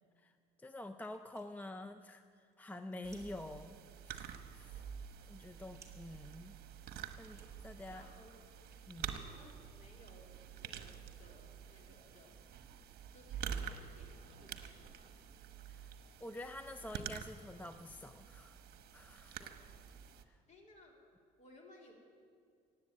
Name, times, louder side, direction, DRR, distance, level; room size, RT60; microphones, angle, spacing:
voice 1, 0.6-3.8 4.0-4.9 5.3-6.6 7.2-8.1 8.9-9.2 15.7-15.9 16.2-18.6 18.9-19.5 20.3-20.4, left 1 dB, 10° left, 9 dB, 0.5 m, -48 dB
sound 1, 1.0-9.9, right 3 dB, 15° right, 2.5 m, -68 dB
sound 2, 3.0-20.2, right 8 dB, 65° right, 1.0 m, -48 dB
voice 2, 7.9-8.3 9.0-12.6 13.1-15.2 19.4-19.7 20.5-21.0 21.4-21.9, left 2 dB, 45° left, 0 dB, 3.3 m, -61 dB
18.0 x 7.9 x 8.4 m, 2.2 s
cardioid pair, 110°, 17 cm